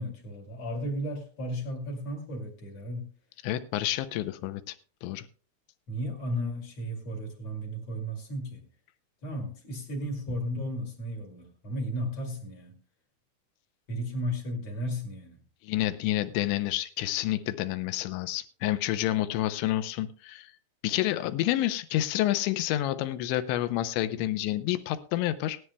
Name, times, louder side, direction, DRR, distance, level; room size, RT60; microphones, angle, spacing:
voice 1, 0.0-3.1 5.9-8.6 9.2-12.8 13.9-15.4, equal, 40° left, 1 dB, 2.6 m, -34 dB
voice 2, 3.4-4.8 5.0-5.3 15.6-20.5 20.8-25.6, left 14 dB, 80° left, 12 dB, 2.7 m, -29 dB
19.5 x 11.0 x 2.2 m, 0.41 s
omnidirectional pair, 5.7 m